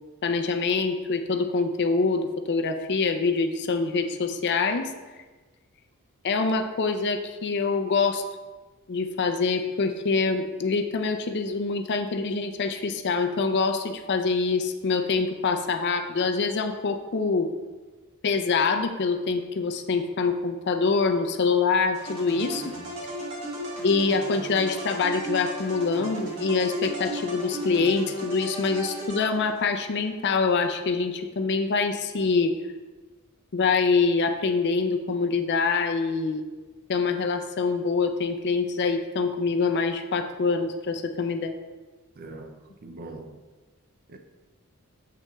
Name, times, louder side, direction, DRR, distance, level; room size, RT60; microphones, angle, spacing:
voice 1, 0.2-4.9 6.2-8.2 8.9-17.5 18.2-22.7 23.8-32.5 33.5-36.4 36.9-41.6, left 4 dB, 50° left, 0.5 m, -25 dB
sound 1, 21.9-29.7, right 1 dB, 60° right, 1.8 m, -35 dB
voice 2, 22.6-23.0 42.2-43.4 44.1-44.2, right 2 dB, 40° right, 0.5 m, -43 dB
7.7 x 6.0 x 2.3 m
head